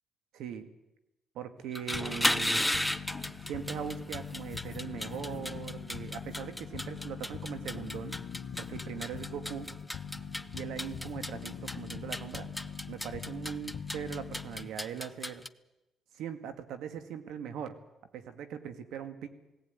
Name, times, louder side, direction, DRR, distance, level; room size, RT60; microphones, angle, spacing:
voice 1, 0.3-0.7 1.4-2.7 3.5-8.2 8.6-9.7 10.5-12.5 12.9-15.4 16.1-17.8 18.1-19.3, right 8 dB, 85° right, 9 dB, 1.9 m, -40 dB
sound 1, 1.6-15.5, left 1 dB, 5° left, 0.7 m, -36 dB
sound 2, 1.9-14.8, left 8 dB, 70° left, 1.3 m, -43 dB
18.0 x 17.5 x 9.5 m, 0.96 s
cardioid pair, 90°, 0 cm